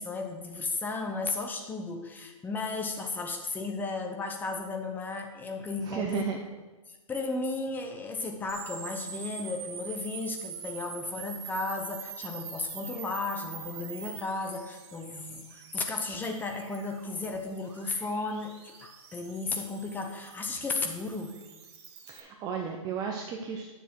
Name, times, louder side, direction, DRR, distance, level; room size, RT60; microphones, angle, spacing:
voice 1, 0.0-6.4 7.1-21.4, left 3 dB, 10° left, 4 dB, 1.0 m, -34 dB
voice 2, 5.8-6.4 22.1-23.7, right 7 dB, 20° right, 1 dB, 0.8 m, -33 dB
sound 1, 8.5-22.2, right 6 dB, 50° right, 1.7 m, -44 dB
9.8 x 6.9 x 4.7 m, 1.2 s
hypercardioid pair, 135°, 18 cm